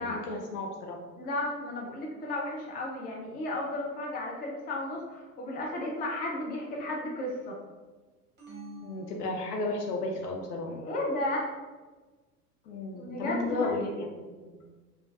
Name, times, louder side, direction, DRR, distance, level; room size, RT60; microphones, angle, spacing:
voice 1, 0.0-1.0 8.8-10.7 12.7-14.6, left 2 dB, 80° left, 1 dB, 0.7 m, -34 dB
voice 2, 1.2-7.6 10.6-11.6 12.9-13.7, left 1 dB, 20° left, -2 dB, 0.5 m, -34 dB
sound 1, 8.4-10.1, right 1 dB, 20° right, 1.2 m, -48 dB
3.1 x 2.5 x 2.4 m, 1.3 s
hypercardioid pair, 90°, 46 cm